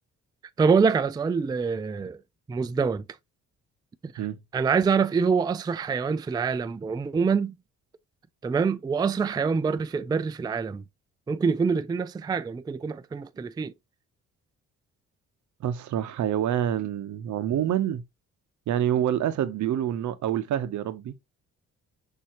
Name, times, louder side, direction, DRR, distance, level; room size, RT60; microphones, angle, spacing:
voice 1, 0.6-2.2 2.5-3.0 4.0-4.1 4.5-7.5 8.4-10.8 11.3-13.7, right 5 dB, 15° right, 0.3 m, -25 dB
voice 2, 15.6-18.0 18.7-21.1, right 10 dB, 70° right, 0.8 m, -27 dB
6.5 x 2.7 x 2.9 m
cardioid pair, 90°, 30 cm